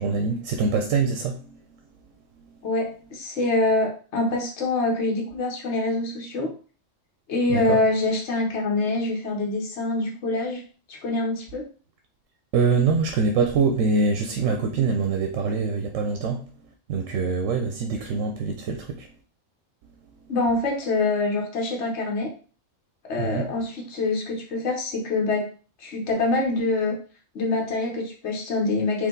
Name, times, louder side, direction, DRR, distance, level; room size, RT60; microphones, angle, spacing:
voice 1, 0.0-1.6 7.5-7.8 12.5-16.5 16.9-19.1 23.2-23.5, right 4 dB, 85° right, 1.0 m, -24 dB
voice 2, 2.6-6.5 7.3-10.6 10.9-11.7 20.3-22.3 23.1-25.5 25.8-26.9 27.3-29.1, left 2 dB, 65° left, 1.4 m, -25 dB
4.7 x 2.9 x 3.9 m
omnidirectional pair, 1.3 m